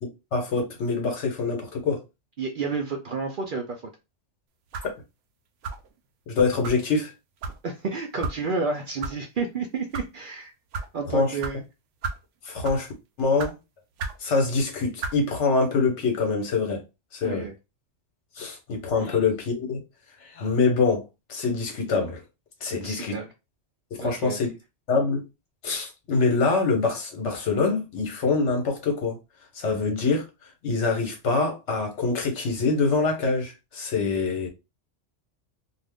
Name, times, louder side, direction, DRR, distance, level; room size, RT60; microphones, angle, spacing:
voice 1, 0.0-2.0 6.3-7.1 11.1-11.4 12.4-12.9 13.2-13.6 14.2-16.8 17.1-17.5 18.4-19.8 20.2-21.0 21.3-22.2 22.6-23.2 23.9-24.5 24.9-25.2 25.6-29.2 29.5-30.2 30.6-34.5, left 4 dB, 70° left, 1.2 m, -25 dB
voice 2, 2.4-3.8 7.6-10.5 10.9-11.6 17.2-17.5 19.0-19.1 22.7-23.3 24.0-24.4, right 4 dB, 60° right, 0.6 m, -30 dB
sound 1, 4.7-5.0 5.6-5.9 6.6-6.8 7.4-7.6 8.2-8.4 9.0-9.1 9.8-10.1 10.7-10.9 11.4-11.5 12.0-12.2 12.6-12.9 13.4-13.5 14.0-14.2 15.0-15.2, right 4 dB, 80° right, 0.9 m, -32 dB
2.6 x 2.4 x 3.4 m
omnidirectional pair, 1.3 m